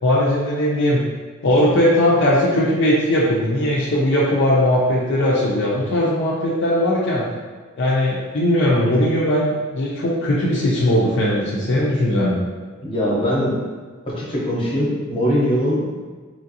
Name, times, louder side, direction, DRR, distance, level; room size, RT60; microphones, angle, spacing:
voice 1, 0.0-1.0 1.4-7.2 7.8-12.5, left 1 dB, 55° left, -5 dB, 0.4 m, -19 dB
voice 2, 12.8-13.6 14.1-16.0, equal, 25° left, -6 dB, 0.7 m, -21 dB
3.0 x 2.5 x 2.7 m, 1.4 s
head